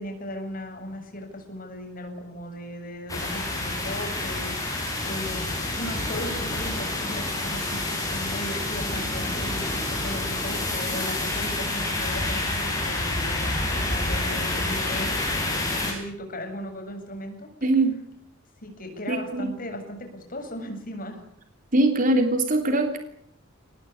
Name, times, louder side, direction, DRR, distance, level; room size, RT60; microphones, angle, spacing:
voice 1, 0.0-15.1 15.4-17.5 18.6-21.2, left 1 dB, 45° left, 4 dB, 7.9 m, -37 dB
sound 1, 3.1-15.9, left 2 dB, 20° left, 7.4 m, -28 dB
voice 2, 17.6-18.0 19.1-19.5 21.7-23.0, right 2 dB, 45° right, 6 dB, 3.2 m, -22 dB
24.5 x 20.0 x 10.0 m, 0.69 s
head